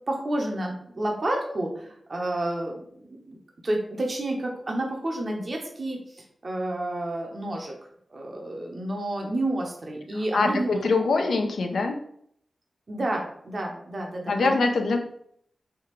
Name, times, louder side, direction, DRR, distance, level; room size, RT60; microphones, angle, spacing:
voice 1, 0.1-3.4 3.6-7.7 8.1-10.8 12.9-14.6, right 1 dB, 50° right, 0 dB, 0.7 m, -30 dB
voice 2, 10.3-12.0 14.3-15.0, left 3 dB, 85° left, 5 dB, 0.4 m, -23 dB
3.4 x 2.4 x 3.0 m, 0.66 s
cardioid pair, 50°, 0 cm